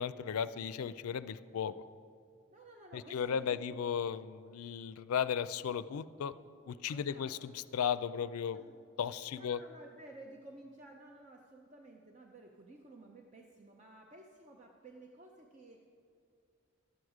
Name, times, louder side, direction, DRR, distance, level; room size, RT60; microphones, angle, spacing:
voice 1, 0.0-1.7 2.9-6.3 6.7-8.6 9.0-9.6, left 7 dB, 85° left, 15 dB, 0.4 m, -35 dB
voice 2, 2.5-3.6 6.9-7.3 8.5-8.8 9.3-15.9, right 1 dB, 35° right, 1 dB, 0.6 m, -54 dB
11.5 x 7.9 x 4.8 m, 2.3 s
head